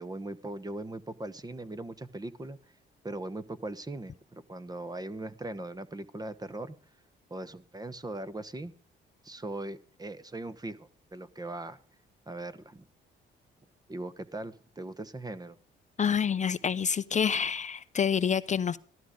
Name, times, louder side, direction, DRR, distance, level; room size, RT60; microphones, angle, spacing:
voice 1, 0.0-2.8 3.0-7.0 7.3-8.7 9.2-11.8 12.3-12.9 13.9-15.6, right 2 dB, 20° right, 14 dB, 1.0 m, -40 dB
voice 2, 16.0-18.8, left 7 dB, 35° left, 14 dB, 0.6 m, -27 dB
14.5 x 12.5 x 5.1 m, 0.42 s
cardioid pair, 90°, 20 cm